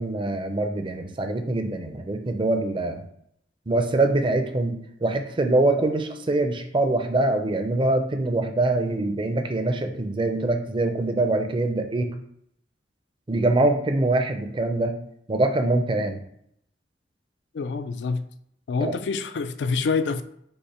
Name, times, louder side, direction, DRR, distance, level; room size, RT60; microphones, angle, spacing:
voice 1, 0.0-3.0 3.7-4.7 5.0-12.1 13.3-14.9 15.3-16.2 18.8-18.9, right 2 dB, 30° right, 0.5 m, -24 dB
voice 2, 17.5-18.3 18.7-20.2, left 4 dB, 70° left, 0.3 m, -26 dB
5.4 x 2.1 x 4.3 m
head